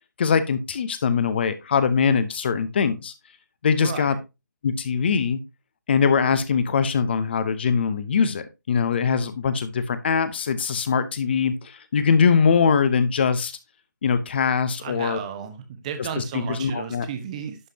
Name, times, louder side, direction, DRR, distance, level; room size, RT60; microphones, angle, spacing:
voice 1, 0.2-3.1 3.6-4.1 4.6-5.4 5.9-13.5 14.0-15.2 16.0-17.1, left 6 dB, 35° left, 0.9 m, -22 dB
voice 2, 3.8-4.2 14.8-17.6, right 7 dB, 20° right, 1.1 m, -33 dB
11.0 x 5.2 x 2.8 m
figure-of-eight pair, 155°, 10 cm